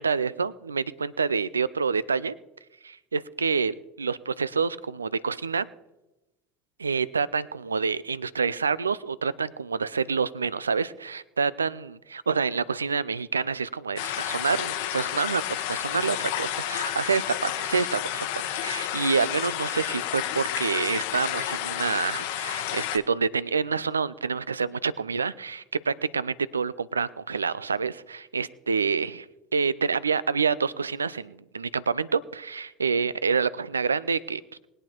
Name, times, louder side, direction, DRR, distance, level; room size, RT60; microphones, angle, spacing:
voice 1, 0.0-2.3 2.8-5.7 6.8-18.3 18.6-29.3 29.5-34.4, right 5 dB, 85° right, 20 dB, 0.4 m, -27 dB
sound 1, 14.0-23.0, left 12 dB, 65° left, 0.8 m, -31 dB
20.0 x 8.8 x 4.5 m, 1.0 s
figure-of-eight pair, 70°, 0 cm